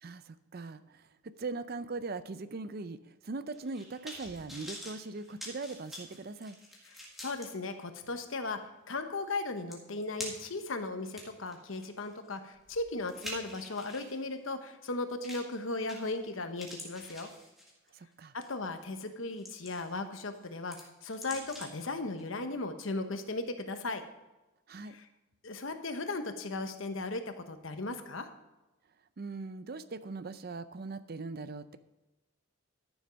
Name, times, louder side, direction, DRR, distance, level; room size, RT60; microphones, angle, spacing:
voice 1, 0.0-6.6 17.9-18.3 24.7-25.0 29.2-31.8, right 3 dB, 45° right, 13 dB, 0.5 m, -40 dB
sound 1, 3.5-7.5 8.0-8.1 9.3-9.4 9.7-10.6 11.0-14.1 15.2-15.5 15.9-16.3 16.6-17.9 18.4-18.6 19.1-20.0 20.3-21.9 22.2-22.3, equal, ahead, 1.9 m, -46 dB
voice 2, 7.2-8.6 8.9-17.3 18.3-24.0 24.9-25.1 25.4-28.3, left 2 dB, 70° left, 7 dB, 1.0 m, -37 dB
12.5 x 7.1 x 5.2 m, 1.1 s
head